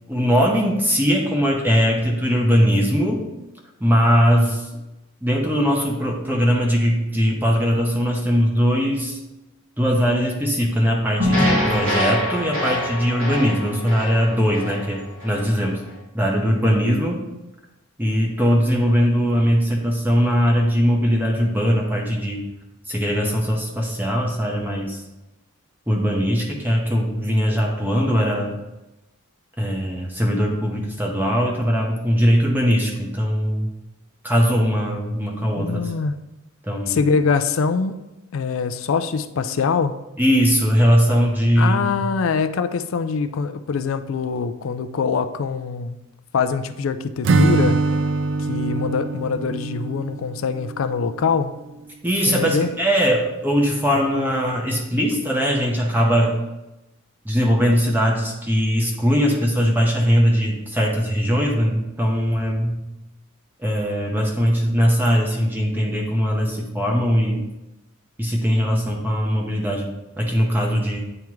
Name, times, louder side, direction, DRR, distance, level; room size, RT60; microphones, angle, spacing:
voice 1, 0.1-3.2 3.8-4.7 5.2-9.2 9.8-15.8 16.1-17.2 18.0-22.4 22.9-25.0 25.9-28.6 29.6-33.7 34.2-35.9 36.6-37.0 40.2-42.1 52.0-56.3 57.2-62.8 63.6-67.4 68.2-71.0, equal, 10° right, -1 dB, 0.7 m, -20 dB
sound 1, 11.2-15.5, left 1 dB, 85° right, 1.8 m, -24 dB
voice 2, 35.6-36.2 36.9-38.0 38.3-40.0 41.6-46.0 46.3-47.8 48.4-51.5 52.3-52.7 53.9-54.3, left 5 dB, 70° left, 10 dB, 0.4 m, -23 dB
Acoustic guitar / Strum, 47.2-51.2, right 3 dB, 60° right, 0.3 m, -22 dB
8.8 x 3.5 x 3.1 m, 0.99 s
head